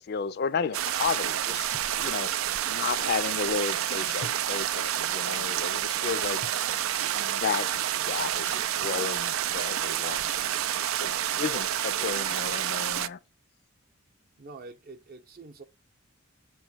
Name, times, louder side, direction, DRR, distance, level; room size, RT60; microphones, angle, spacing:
voice 1, 0.0-1.7 2.0-2.3 2.7-6.4 7.1-7.8 8.1-10.3 11.0-13.2, left 6 dB, 50° left, 0.4 m, -33 dB
sound 1, 0.7-13.1, right 11 dB, 80° right, 0.4 m, -29 dB
sound 2, 1.7-2.1 4.2-4.8 6.4-6.8 8.8-9.3, left 3 dB, 85° left, 0.8 m, -46 dB
voice 2, 14.4-15.6, right 3 dB, 50° right, 0.7 m, -45 dB
7.5 x 3.1 x 6.1 m
head